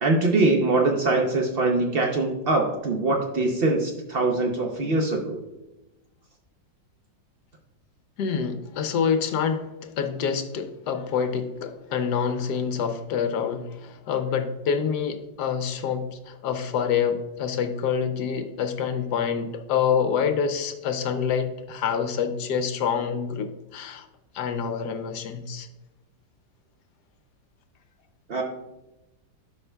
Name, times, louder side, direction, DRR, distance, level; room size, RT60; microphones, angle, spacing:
voice 1, 0.0-5.4 28.3-28.4, right 2 dB, 65° right, 1 dB, 0.5 m, -23 dB
voice 2, 8.2-24.1 24.3-25.7, left 7 dB, 70° left, 7 dB, 1.1 m, -27 dB
12.0 x 5.6 x 2.2 m, 1.0 s
omnidirectional pair, 2.0 m